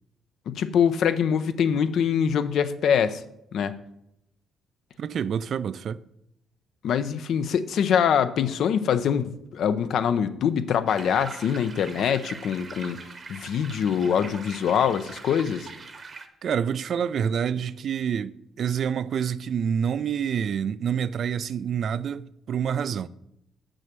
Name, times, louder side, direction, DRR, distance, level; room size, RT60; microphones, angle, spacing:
voice 1, 0.5-3.2 3.5-3.7 6.8-13.0 13.3-15.7, left 8 dB, 70° left, 0.5 m, -24 dB
voice 2, 5.0-6.0 16.4-23.1, right 8 dB, 60° right, 0.3 m, -27 dB
sound 1, 10.9-16.3, right 4 dB, 40° right, 0.9 m, -42 dB
6.5 x 6.3 x 5.9 m
cardioid pair, 90°, 0 cm